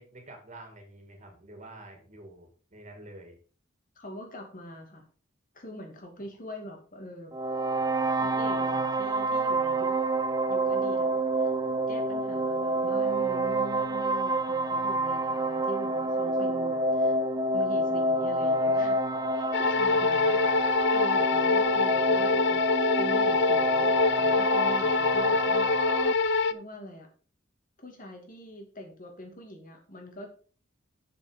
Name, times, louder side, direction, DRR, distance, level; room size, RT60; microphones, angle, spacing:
voice 1, 0.0-3.4, right 1 dB, 35° right, 3 dB, 2.4 m, -48 dB
voice 2, 4.0-5.1 5.5-7.3 8.2-10.0 10.5-11.5 11.9-17.2 17.5-19.0 19.3-22.6 23.0-25.7 26.5-27.1 27.8-30.3, equal, 45° left, 3 dB, 2.3 m, -43 dB
sound 1, 7.3-26.1, right 1 dB, 20° right, 0.5 m, -28 dB
sound 2, 19.5-26.5, left 4 dB, 60° left, 0.5 m, -25 dB
7.4 x 6.9 x 5.0 m, 0.40 s
head